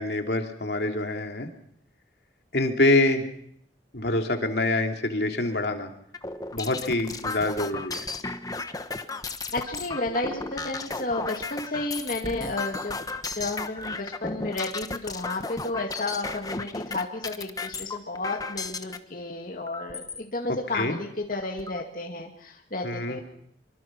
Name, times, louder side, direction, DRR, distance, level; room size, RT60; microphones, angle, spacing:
voice 1, 0.0-1.5 2.5-3.3 3.9-5.9 6.5-8.1 20.7-21.0 22.8-23.2, left 2 dB, 70° left, 4 dB, 2.7 m, -25 dB
sound 1, 6.1-19.0 19.7-20.2 20.8-20.9 21.2-21.8, left 3 dB, 20° left, 1.1 m, -34 dB
voice 2, 9.5-13.0 13.3-23.2, left 2 dB, 50° left, 1 dB, 2.2 m, -32 dB
25.0 x 24.0 x 6.1 m, 0.69 s
head